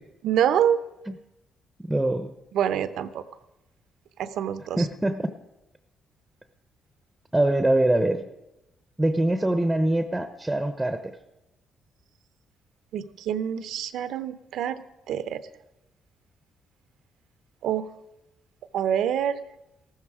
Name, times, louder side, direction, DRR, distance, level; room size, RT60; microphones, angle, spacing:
voice 1, 0.2-0.8 2.5-3.2 4.2-4.8 12.9-15.4 17.6-17.9 18.7-19.4, right 9 dB, 80° right, 13 dB, 0.7 m, -26 dB
voice 2, 1.8-2.3 4.8-5.3 7.3-8.2 9.0-11.2, right 1 dB, 10° right, 9 dB, 0.8 m, -23 dB
14.5 x 13.0 x 4.9 m, 0.93 s
cardioid pair, 90°, 0 cm